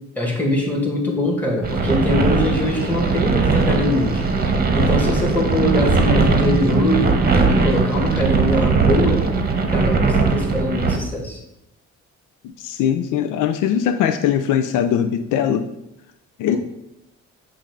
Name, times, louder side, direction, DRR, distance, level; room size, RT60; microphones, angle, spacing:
voice 1, 0.2-4.2 4.7-7.1 7.5-9.3 9.7-11.4 16.5-16.6, left 1 dB, 5° left, -1 dB, 1.9 m, -22 dB
sound 1, 1.6-11.0, right 4 dB, 30° right, 1.0 m, -19 dB
voice 2, 12.6-15.6 16.4-16.6, left 9 dB, 90° left, 8 dB, 0.5 m, -20 dB
7.3 x 2.6 x 5.2 m, 0.84 s
cardioid pair, 90°, 30 cm